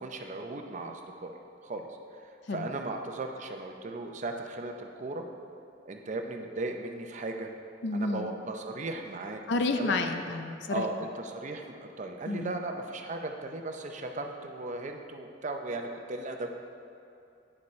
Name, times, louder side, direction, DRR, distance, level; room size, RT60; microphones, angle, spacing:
voice 1, 0.0-1.9 2.2-5.2 5.9-7.5 7.9-9.4 9.7-9.9 10.7-16.5, right 2 dB, 40° right, 4 dB, 0.6 m, -37 dB
voice 2, 7.8-8.3 9.5-10.8 12.3-12.6, left 3 dB, 65° left, 6 dB, 0.5 m, -30 dB
9.7 x 6.9 x 3.2 m, 2.6 s
head